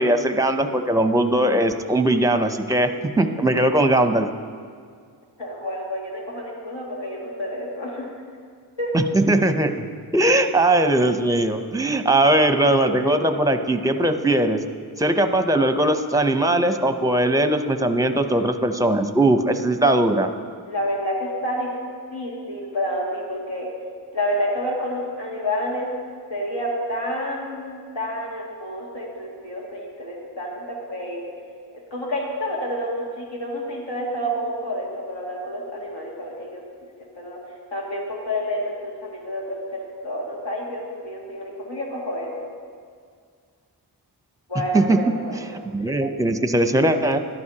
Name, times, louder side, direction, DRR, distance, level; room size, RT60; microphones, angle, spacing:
voice 1, 0.0-4.3 8.9-9.9 10.1-14.6 15.0-20.3 44.7-45.0 45.7-47.2, right 1 dB, 10° right, 7 dB, 0.6 m, -20 dB
voice 2, 5.4-8.1 8.8-8.9 20.2-20.3 20.7-21.7 22.1-23.7 24.1-25.9 26.3-31.2 31.9-36.6 37.2-37.4 37.7-42.5 44.5-45.4, equal, 80° left, -4 dB, 2.3 m, -29 dB
14.0 x 12.0 x 2.9 m, 2.1 s
wide cardioid pair, 70°, 42 cm